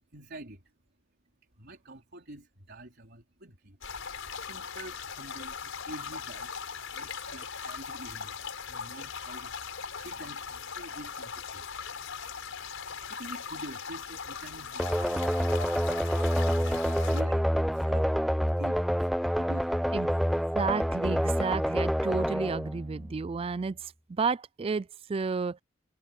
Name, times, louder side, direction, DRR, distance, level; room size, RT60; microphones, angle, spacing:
voice 1, 0.1-0.6 1.6-3.8 4.4-6.5 6.9-11.7 13.1-15.7 16.5-19.8, right 1 dB, 55° right, 4.3 m, -47 dB
sound 1, 3.8-17.2, left 6 dB, 75° left, 5.3 m, -39 dB
sound 2, 14.8-23.5, equal, ahead, 0.7 m, -28 dB
voice 2, 20.5-25.6, right 4 dB, 30° right, 0.4 m, -32 dB
head